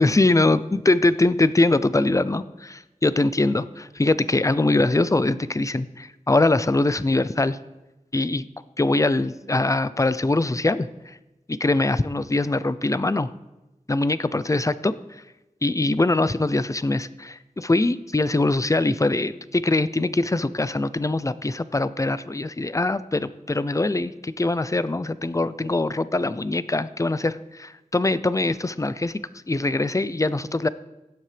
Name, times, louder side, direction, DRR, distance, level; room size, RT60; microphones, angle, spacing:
voice 1, 0.0-7.6 8.1-8.5 8.8-11.1 11.5-13.3 13.9-14.9 15.6-29.1 29.5-30.7, left 2 dB, 25° left, 15 dB, 0.5 m, -22 dB
16.5 x 7.4 x 3.4 m, 1.0 s
cardioid pair, 40°, 14 cm